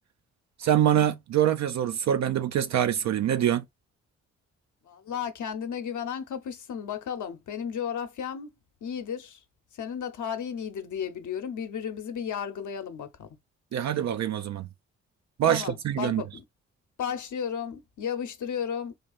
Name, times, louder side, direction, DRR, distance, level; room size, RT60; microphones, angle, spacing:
voice 1, 0.6-3.6 13.7-14.7 15.4-16.2, right 10 dB, 50° right, 0.5 m, -25 dB
voice 2, 4.8-8.5 8.8-9.4 9.7-13.4 15.5-16.4 17.0-18.9, left 8 dB, 55° left, 0.9 m, -34 dB
3.3 x 2.3 x 4.1 m
hypercardioid pair, 40°, 36 cm